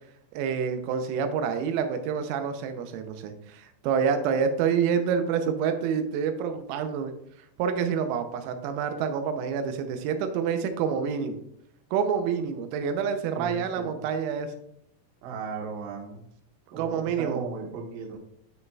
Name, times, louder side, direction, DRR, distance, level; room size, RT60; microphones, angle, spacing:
voice 1, 0.3-7.1 7.6-11.4 11.9-14.5 16.8-17.4, right 7 dB, 85° right, 7 dB, 3.5 m, -27 dB
voice 2, 13.3-14.0 15.2-16.2 16.7-18.2, right 5 dB, 70° right, -1 dB, 2.2 m, -36 dB
11.5 x 6.4 x 2.3 m, 0.76 s
omnidirectional pair, 6.0 m